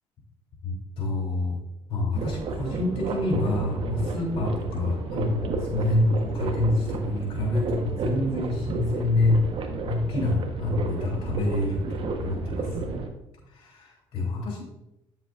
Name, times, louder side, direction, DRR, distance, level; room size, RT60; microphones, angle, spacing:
voice 1, 0.6-1.6 1.9-9.5 9.8-12.7 13.5-14.6, left 2 dB, 60° left, -2 dB, 3.1 m, -27 dB
sound 1, 2.1-13.1, right 3 dB, 55° right, 1.2 m, -32 dB
9.3 x 7.6 x 2.5 m, 0.90 s
cardioid pair, 85°, 11 cm